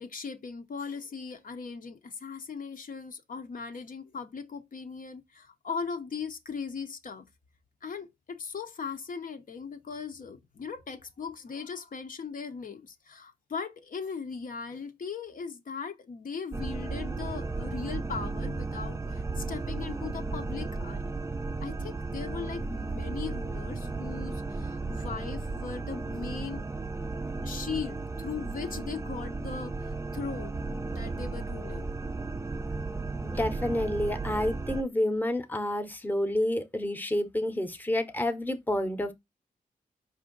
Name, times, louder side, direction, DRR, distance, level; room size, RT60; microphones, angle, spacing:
voice 1, 0.0-7.3 7.8-21.0 21.6-26.7 27.4-31.9 33.3-33.4, left 5 dB, 60° left, 0.7 m, -39 dB
sound 1, 16.5-34.8, right 3 dB, 20° right, 0.4 m, -34 dB
voice 2, 33.2-39.1, left 1 dB, 10° left, 0.8 m, -29 dB
4.9 x 2.6 x 3.8 m
cardioid pair, 70°, 16 cm